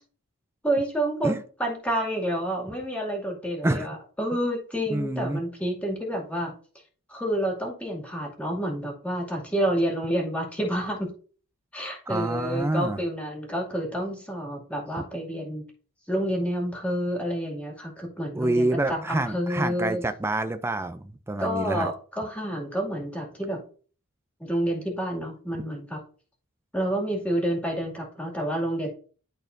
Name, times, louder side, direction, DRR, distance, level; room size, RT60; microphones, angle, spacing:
voice 1, 0.6-6.5 7.1-11.1 11.7-15.6 16.1-20.0 21.4-23.6 24.4-26.0 26.7-28.9, right 1 dB, 5° left, 0 dB, 2.2 m, -29 dB
voice 2, 4.9-5.4 12.1-13.0 18.3-21.9, right 2 dB, 10° right, 9 dB, 0.4 m, -27 dB
11.5 x 4.2 x 2.6 m, 0.40 s
head